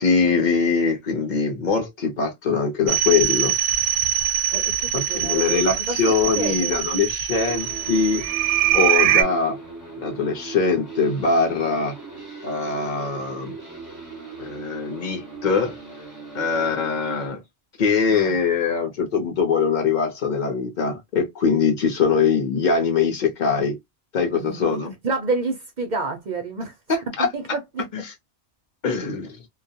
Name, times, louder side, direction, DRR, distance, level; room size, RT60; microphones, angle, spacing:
voice 1, 0.0-3.5 4.9-8.2 8.7-9.6 10.0-11.9 12.4-13.6 14.4-15.8 16.3-17.4 17.8-23.8 24.1-24.9 26.9-27.3 27.9-28.1 28.8-29.4, left 5 dB, 45° left, 0.7 m, -22 dB
sound 1, 2.9-9.2, right 11 dB, 90° right, 0.9 m, -23 dB
voice 2, 4.5-6.0 6.3-6.8 18.2-18.4 24.4-26.7 27.2-27.9, right 3 dB, 55° right, 0.5 m, -29 dB
sound 2, 7.3-17.3, right 4 dB, 20° left, 0.9 m, -39 dB
2.3 x 2.0 x 2.6 m
omnidirectional pair, 1.2 m